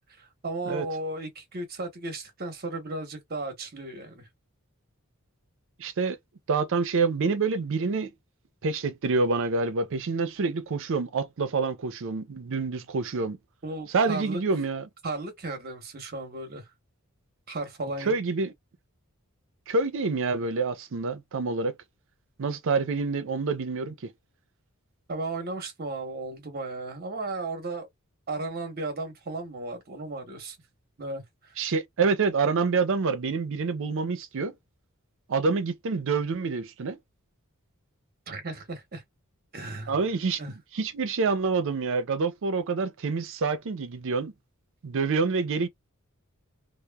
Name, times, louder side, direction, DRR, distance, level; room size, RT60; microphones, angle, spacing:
voice 1, 0.2-4.3 13.6-14.4 15.0-16.6 17.5-18.1 25.1-27.9 28.3-30.6 31.0-31.5 38.3-39.0 39.5-39.9 40.4-40.5, right 2 dB, 45° right, 0.9 m, -35 dB
voice 2, 5.8-6.2 6.5-8.1 8.6-13.4 13.9-14.9 18.0-18.5 19.7-21.7 22.4-24.0 31.6-34.5 35.3-37.0 39.9-40.4 40.7-44.3 44.8-45.7, right 4 dB, 60° right, 0.5 m, -27 dB
2.9 x 2.0 x 2.2 m
head